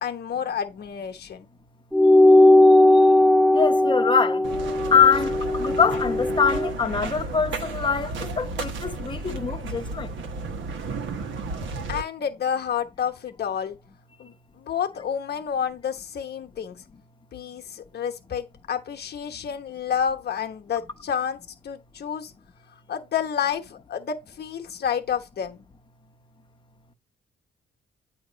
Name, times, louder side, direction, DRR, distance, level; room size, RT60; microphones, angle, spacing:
voice 1, 0.0-1.5 11.9-13.8 14.2-16.8 17.3-21.4 21.6-22.3 22.9-25.7, left 8 dB, 55° left, 1.1 m, -29 dB
sound 1, 1.9-6.7, left 1 dB, ahead, 0.5 m, -18 dB
voice 2, 3.5-4.5 4.9-10.1, left 6 dB, 25° left, 0.9 m, -23 dB
sound 2, 4.4-12.0, right 3 dB, 75° right, 1.3 m, -33 dB
8.6 x 3.0 x 5.1 m
cardioid pair, 90°, 20 cm